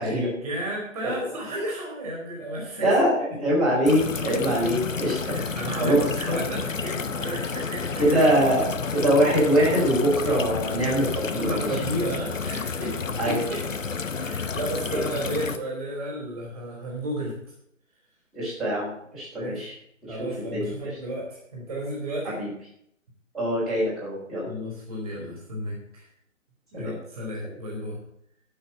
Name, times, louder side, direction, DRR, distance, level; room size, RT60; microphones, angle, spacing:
voice 1, 0.0-2.9 4.6-4.7 5.2-8.3 11.3-13.6 14.2-17.4 19.3-19.7 20.1-22.4 24.4-26.1 26.7-28.0, right 1 dB, 30° right, -2 dB, 2.8 m, -33 dB
voice 2, 2.8-5.4 5.8-6.1 8.0-8.6 8.9-11.5 13.2-13.4 14.9-15.0 18.3-19.7 20.4-20.9 22.2-22.5 23.3-24.5 26.7-27.0, equal, ahead, -12 dB, 3.6 m, -23 dB
sound 1, 3.9-15.6, left 5 dB, 75° left, 0.9 m, -30 dB
12.0 x 5.7 x 7.5 m, 0.73 s
figure-of-eight pair, 145°, 40 cm